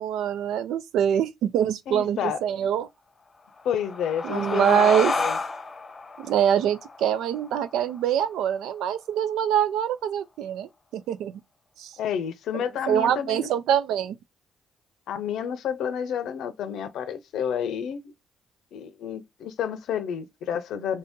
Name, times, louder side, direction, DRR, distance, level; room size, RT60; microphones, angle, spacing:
voice 1, 0.0-2.9 4.2-5.1 6.2-11.3 11.8-11.9 12.5-14.2, right 9 dB, 85° right, 0.4 m, -24 dB
voice 2, 1.9-2.4 3.6-4.9 5.2-5.4 12.0-13.5 15.1-18.1 18.7-21.0, left 8 dB, 80° left, 0.6 m, -30 dB
sound 1, 3.5-8.7, left 3 dB, 35° left, 0.7 m, -31 dB
2.7 x 2.7 x 3.5 m
cardioid pair, 90°, 0 cm